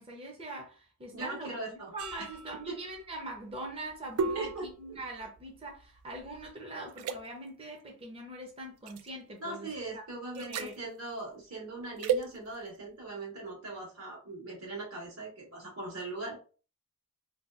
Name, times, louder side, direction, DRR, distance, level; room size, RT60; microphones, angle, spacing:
voice 1, 0.0-1.5 1.9-10.0 10.3-10.7, right 1 dB, 25° right, 0.5 m, -42 dB
voice 2, 1.1-1.9 2.2-2.3 2.7-2.8 4.3-5.0 9.4-16.4, right 2 dB, 70° right, 1.2 m, -40 dB
sound 1, 2.0-6.5 6.9-7.2 8.9-9.1 10.3-10.8 12.0-12.3, right 6 dB, 90° right, 0.3 m, -35 dB
2.6 x 2.2 x 2.3 m
head